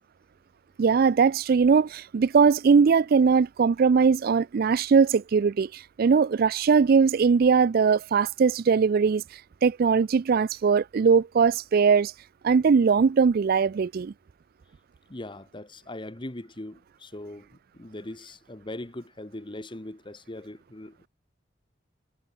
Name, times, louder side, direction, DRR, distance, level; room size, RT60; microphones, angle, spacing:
voice 1, 0.8-9.2 9.6-12.1 12.4-14.1, right 5 dB, 50° right, 0.4 m, -20 dB
voice 2, 15.1-17.5 17.7-21.1, left 1 dB, 25° left, 1.3 m, -40 dB
head